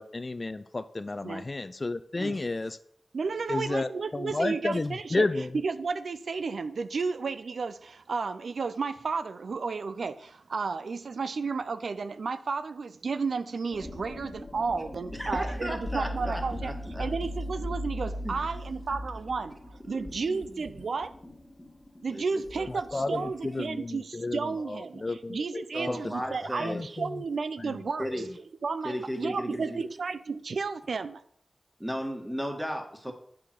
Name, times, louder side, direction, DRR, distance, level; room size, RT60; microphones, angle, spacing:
voice 1, 0.0-2.8 3.5-5.5 22.9-24.4 24.7-26.0 26.6-27.2 27.6-27.8 28.0-28.3, left 2 dB, 45° left, 12 dB, 0.4 m, -32 dB
voice 2, 3.1-5.3 5.6-16.7 17.0-21.1 22.0-28.1 28.6-31.2, right 4 dB, 85° right, 12 dB, 0.4 m, -33 dB
sound 1, 13.7-23.7, equal, 25° left, 1.8 m, -38 dB
voice 3, 15.1-17.1 18.2-18.4 19.9-20.6 22.1-23.2 25.7-26.9 28.0-28.3 28.8-29.8 31.8-33.1, equal, 10° right, 3 dB, 1.8 m, -35 dB
8.1 x 4.9 x 6.0 m, 0.67 s
cardioid pair, 45°, 0 cm